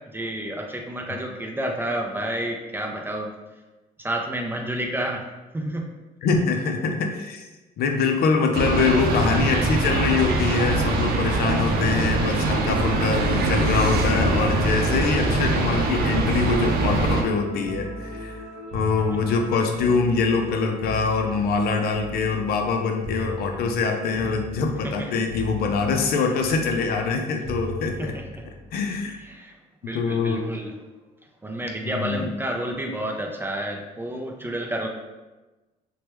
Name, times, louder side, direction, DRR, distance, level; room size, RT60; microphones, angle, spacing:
voice 1, 0.1-3.3 4.0-5.2 5.5-5.9 24.8-25.2 28.0-28.5 29.2-29.5 29.8-30.7 31.4-34.9, right 1 dB, 15° right, 1 dB, 0.3 m, -30 dB
voice 2, 6.2-7.4 7.8-18.4 18.7-28.1 28.7-29.2 29.9-30.4 31.8-32.3, left 4 dB, 65° left, 4 dB, 0.5 m, -24 dB
sound 1, 8.5-17.2, right 2 dB, 65° right, 0.5 m, -23 dB
sound 2, 11.8-19.6, equal, 40° right, 1.1 m, -40 dB
sound 3, 16.6-18.4 18.7-22.7 23.0-23.9 24.1-25.0 25.3-29.3 30.5-30.7, left 1 dB, 45° left, 1.1 m, -38 dB
2.9 x 2.2 x 3.2 m, 1.1 s
cardioid pair, 110°, 17 cm